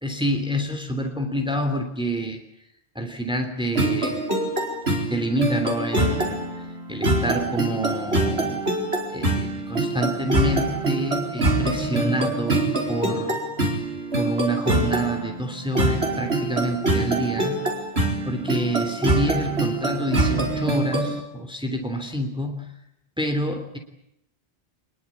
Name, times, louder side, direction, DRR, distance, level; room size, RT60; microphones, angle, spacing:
voice 1, 0.0-2.4 2.9-4.2 5.1-8.6 9.1-13.4 14.1-17.7 18.2-22.7 23.2-23.8, right 1 dB, 5° right, 4 dB, 3.3 m, -27 dB
sound 1, 3.7-21.2, right 2 dB, 85° right, 5.3 m, -24 dB
25.0 x 22.5 x 8.6 m, 0.79 s
omnidirectional pair, 1.0 m